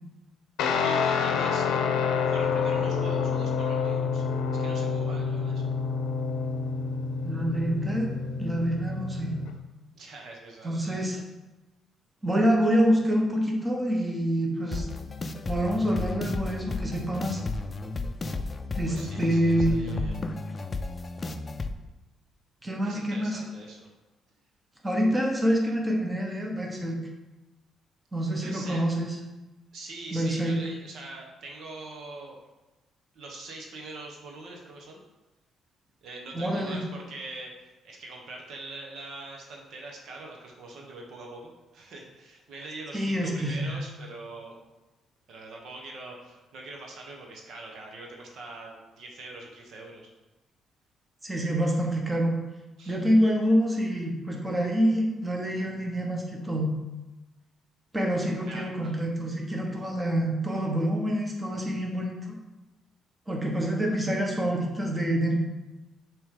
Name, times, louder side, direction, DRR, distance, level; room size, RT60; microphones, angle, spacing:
Guitar, 0.6-9.5, left 5 dB, 85° left, 0.6 m, -28 dB
voice 1, 0.8-1.9 2.3-4.2 4.6-5.6 9.9-11.2 18.8-20.2 22.8-23.9 28.4-28.8 29.7-32.4 33.1-35.0 36.0-44.6 45.3-50.1 52.8-53.0 58.4-59.0, right 2 dB, 70° right, 0 dB, 1.2 m, -43 dB
voice 2, 7.2-8.1 8.4-9.3 10.6-11.2 12.2-14.9 15.5-17.4 18.8-20.0 22.6-23.4 24.8-27.0 28.1-29.2 30.1-30.6 36.3-36.8 42.9-43.8 51.2-52.4 52.9-56.7 57.9-62.3 63.3-65.4, equal, 15° right, 0 dB, 1.1 m, -26 dB
sound 1, 14.7-21.7, left 3 dB, 30° left, 0.5 m, -33 dB
6.9 x 3.3 x 5.0 m, 1.1 s
cardioid pair, 90°, 0 cm